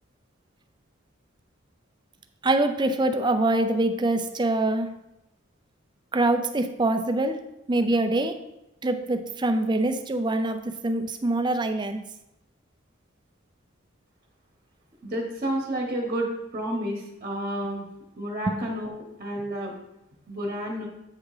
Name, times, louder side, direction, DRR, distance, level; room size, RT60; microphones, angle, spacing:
voice 1, 2.4-4.9 6.1-7.4 7.7-8.4 8.8-12.0 18.5-18.6, right 2 dB, 20° right, 7 dB, 0.5 m, -24 dB
voice 2, 15.0-16.3 16.5-17.8 18.2-19.7 20.3-20.9, right 1 dB, 40° right, -1 dB, 1.1 m, -30 dB
8.3 x 3.6 x 4.9 m, 0.88 s
head